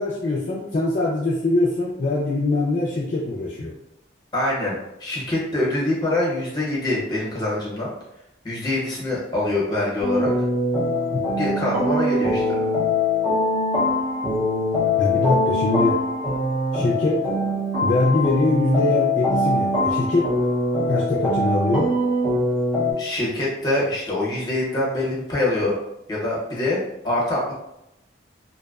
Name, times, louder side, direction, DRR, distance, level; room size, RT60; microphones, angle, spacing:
voice 1, 0.0-3.7 11.1-11.2 15.0-16.0 16.7-17.2 17.8-20.3 20.9-21.9, left 2 dB, 40° left, -6 dB, 0.4 m, -22 dB
voice 2, 4.3-7.9 8.4-10.3 11.4-12.7 23.0-25.8 26.1-27.5, left 2 dB, 20° left, -6 dB, 0.8 m, -24 dB
sound 1, 10.0-22.9, left 1 dB, 15° right, 0.6 m, -23 dB
2.5 x 2.1 x 2.3 m, 0.87 s
head